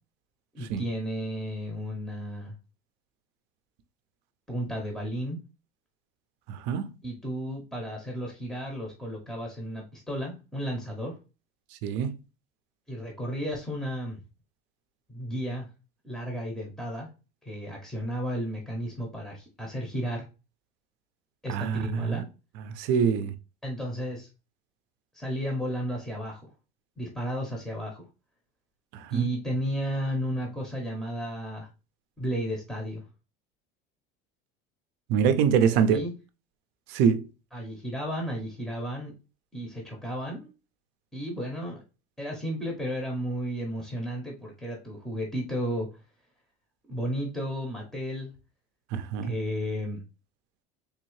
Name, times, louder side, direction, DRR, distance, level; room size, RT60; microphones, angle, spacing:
voice 1, 0.5-2.5 4.5-5.4 7.0-11.1 12.9-14.2 15.1-15.7 16.0-17.1 17.4-20.2 21.4-22.3 23.6-24.3 25.1-26.5 27.0-28.0 29.1-31.7 32.2-33.0 35.7-36.1 37.5-39.1 39.5-40.5 41.1-41.8 42.2-45.9 46.9-48.3 49.2-50.0, equal, ahead, 0.7 m, -33 dB
voice 2, 6.5-6.9 11.8-12.1 21.5-22.2 22.7-23.3 28.9-29.3 35.1-36.1 36.9-37.3 48.9-49.3, right 7 dB, 60° right, 0.5 m, -25 dB
3.5 x 2.7 x 3.0 m
cardioid pair, 165°, 20 cm